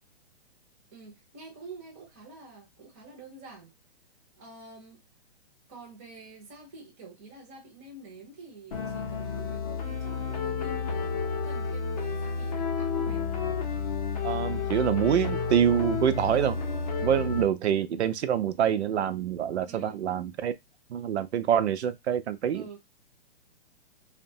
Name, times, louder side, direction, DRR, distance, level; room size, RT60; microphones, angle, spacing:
voice 1, 0.9-3.7 4.4-5.0 5.7-13.2 19.7-20.0 22.5-22.8, right 3 dB, 15° right, 0.5 m, -47 dB
sound 1, 8.7-17.5, left 5 dB, 35° left, 0.5 m, -31 dB
voice 2, 14.2-16.6 17.0-20.5 20.9-22.6, right 9 dB, 80° right, 0.5 m, -26 dB
2.7 x 2.1 x 2.6 m
hypercardioid pair, 165°, 33 cm